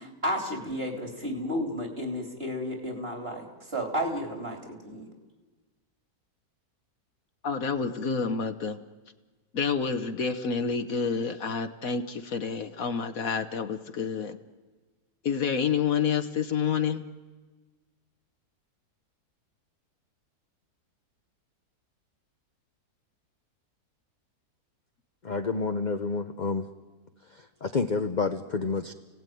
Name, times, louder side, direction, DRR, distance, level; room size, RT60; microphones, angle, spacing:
voice 1, 0.0-5.1, equal, 35° right, 3 dB, 3.7 m, -32 dB
voice 2, 7.4-8.8 9.5-14.4 15.2-17.0, left 6 dB, 60° left, 8 dB, 1.5 m, -28 dB
voice 3, 25.2-26.7 27.2-28.9, left 4 dB, 35° left, 7 dB, 0.8 m, -29 dB
30.0 x 17.5 x 9.3 m, 1.3 s
omnidirectional pair, 1.7 m